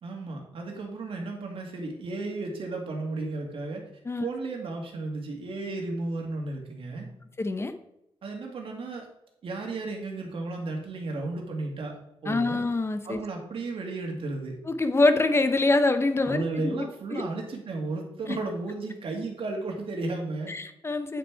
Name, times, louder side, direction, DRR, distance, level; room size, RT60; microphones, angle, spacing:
voice 1, 0.0-3.8 4.2-7.1 8.2-9.1 9.4-12.0 12.2-12.6 13.0-14.5 16.2-20.5, right 3 dB, 70° right, 1 dB, 2.1 m, -34 dB
voice 2, 7.4-7.7 12.3-13.2 14.7-17.2 18.3-18.4 20.5-21.2, left 2 dB, 25° left, 9 dB, 0.7 m, -25 dB
9.1 x 6.0 x 4.6 m, 0.84 s
wide cardioid pair, 125°, 10 cm